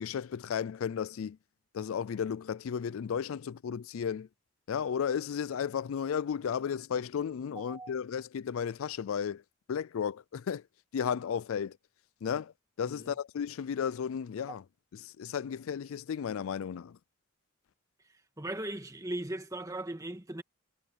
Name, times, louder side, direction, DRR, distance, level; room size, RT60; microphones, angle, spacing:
voice 1, 0.0-1.4 1.7-4.3 4.7-9.4 9.7-10.6 10.9-11.8 12.2-12.5 12.8-14.6 14.9-17.0, left 7 dB, 75° left, 0.4 m, -34 dB
voice 2, 7.5-7.9 12.9-13.1 14.5-14.6 18.4-20.4, right 1 dB, 15° right, 1.8 m, -38 dB
head